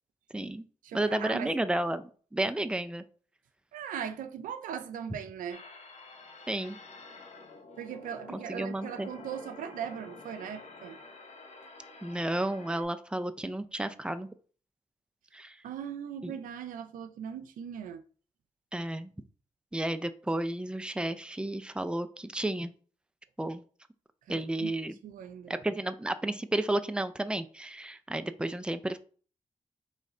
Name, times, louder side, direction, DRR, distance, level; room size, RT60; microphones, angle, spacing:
voice 1, 0.3-0.6 0.9-3.0 5.1-5.2 6.5-6.8 8.3-9.1 12.0-14.3 15.3-15.6 16.2-16.4 18.7-19.1 19.7-22.7 23.4-23.6 24.3-25.0 25.5-29.0, right 1 dB, 5° right, 0.5 m, -32 dB
voice 2, 0.8-1.5 3.7-5.6 7.8-11.0 15.6-18.0 24.3-24.7 25.0-25.5, right 8 dB, 90° right, 0.4 m, -39 dB
sound 1, 5.5-12.8, left 3 dB, 55° left, 0.9 m, -49 dB
4.2 x 3.1 x 3.7 m
supercardioid pair, 45°, 13 cm